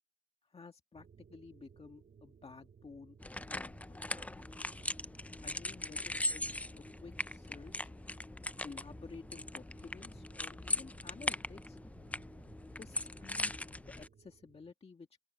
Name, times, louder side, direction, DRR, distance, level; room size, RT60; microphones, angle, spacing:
voice 1, 0.5-3.2 3.5-4.5 5.4-7.9 8.6-11.8 12.8-15.2, left 4 dB, 30° left, 1.8 m, -53 dB
sound 1, 0.9-14.7, right 6 dB, 45° right, 2.3 m, -61 dB
sound 2, 3.2-14.1, left 2 dB, 5° left, 0.4 m, -40 dB
open air
cardioid pair, 90°, 20 cm